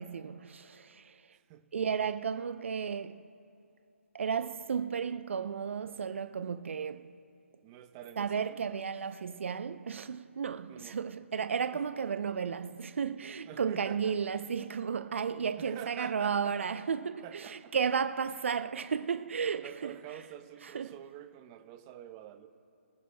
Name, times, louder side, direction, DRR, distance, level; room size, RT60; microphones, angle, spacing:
voice 1, 0.0-1.4 1.7-3.2 4.1-7.1 8.2-20.0 20.6-21.0, right 6 dB, 60° right, 0.5 m, -33 dB
voice 2, 1.3-1.7 7.6-8.6 10.7-11.0 11.7-11.8 13.4-14.2 15.6-16.6 17.2-17.7 19.6-22.5, right 11 dB, 20° right, 0.7 m, -47 dB
24.5 x 14.0 x 2.2 m
hypercardioid pair, 155°, 7 cm